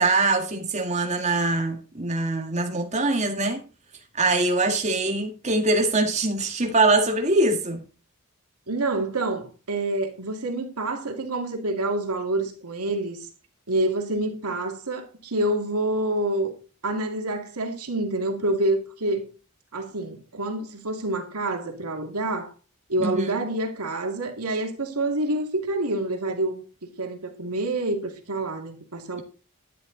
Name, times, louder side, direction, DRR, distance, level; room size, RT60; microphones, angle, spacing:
voice 1, 0.0-3.6 4.1-7.8 23.0-23.4, right 2 dB, 30° right, 2.0 m, -23 dB
voice 2, 8.7-13.3 13.7-16.5 16.8-19.2 19.7-22.5 22.9-29.2, right 2 dB, 90° right, 2.4 m, -27 dB
12.0 x 10.0 x 4.0 m
head